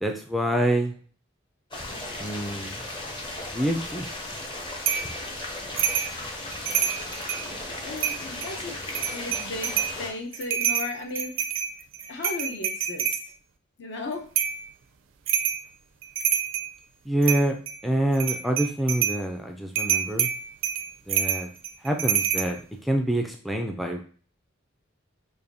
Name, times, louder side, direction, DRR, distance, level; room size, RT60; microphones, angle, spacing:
voice 1, 0.0-1.0 2.2-2.8 3.5-4.1 17.1-17.6 17.8-20.3 21.1-21.5 21.8-22.6 22.8-24.0, right 1 dB, ahead, 3 dB, 0.3 m, -26 dB
sound 1, 1.7-10.1, left 2 dB, 25° left, 0.7 m, -36 dB
sound 2, 4.9-5.1 5.8-6.1 6.5-7.5 8.0-8.5 8.9-10.0 10.3-13.2 14.4-14.6 15.3-15.6 16.0-16.7 17.2-17.8 18.1-19.2 19.8-22.5, right 8 dB, 75° right, 0.4 m, -27 dB
voice 2, 7.8-8.7 9.1-11.3 12.1-13.2 13.8-14.3, left 2 dB, 65° left, 3 dB, 0.8 m, -35 dB
4.9 x 2.6 x 2.6 m, 0.43 s
head